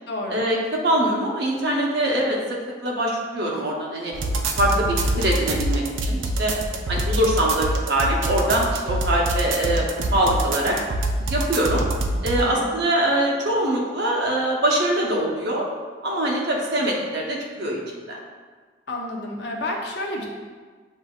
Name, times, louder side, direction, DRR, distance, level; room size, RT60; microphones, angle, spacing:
voice 1, 0.1-0.4 12.4-12.7 18.9-20.3, left 1 dB, 60° left, 0 dB, 0.7 m, -30 dB
voice 2, 0.8-4.1 4.6-6.5 6.9-9.8 10.1-10.7 11.3-11.8 12.2-15.6 16.0-18.2, right 1 dB, 55° right, -2 dB, 0.9 m, -23 dB
sound 1, 4.1-12.4, right 1 dB, 75° right, 0.5 m, -25 dB
8.0 x 2.7 x 2.4 m, 1.5 s
head